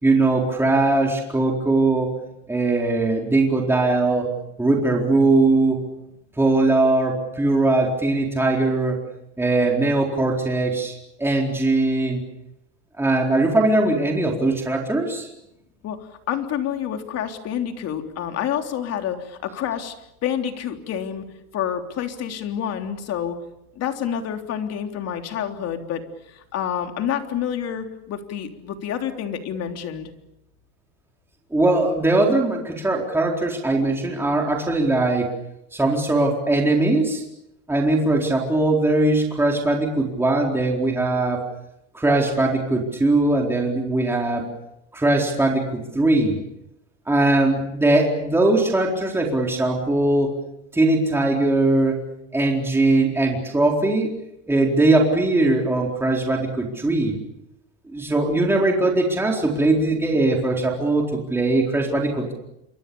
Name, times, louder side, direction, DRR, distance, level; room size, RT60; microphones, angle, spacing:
voice 1, 0.0-2.1 2.5-4.3 4.6-5.8 6.4-9.0 9.4-10.9 11.2-12.2 13.0-15.3 31.5-35.3 35.7-37.2 37.7-41.5 41.9-44.4 44.9-46.4 47.1-50.4 50.7-52.0 52.3-54.1 54.5-57.2 57.9-62.3, right 2 dB, 5° right, 0 dB, 4.2 m, -20 dB
voice 2, 15.8-19.9 20.2-21.2 21.5-23.3 23.7-26.0 26.3-30.1, left 9 dB, 45° left, 5 dB, 3.5 m, -28 dB
27.5 x 25.0 x 7.1 m, 0.85 s
cardioid pair, 140°, 35 cm